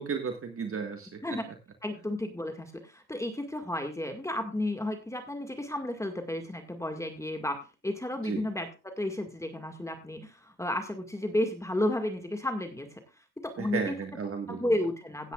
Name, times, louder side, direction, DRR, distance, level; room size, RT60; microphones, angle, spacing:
voice 1, 0.0-1.2 8.2-8.4 13.6-14.6, right 6 dB, 35° right, 5 dB, 1.7 m, -34 dB
voice 2, 1.8-13.0 13.4-13.9 14.5-15.3, left 1 dB, 5° left, 5 dB, 1.9 m, -32 dB
16.5 x 9.7 x 2.4 m, 0.29 s
cardioid pair, 115°, 39 cm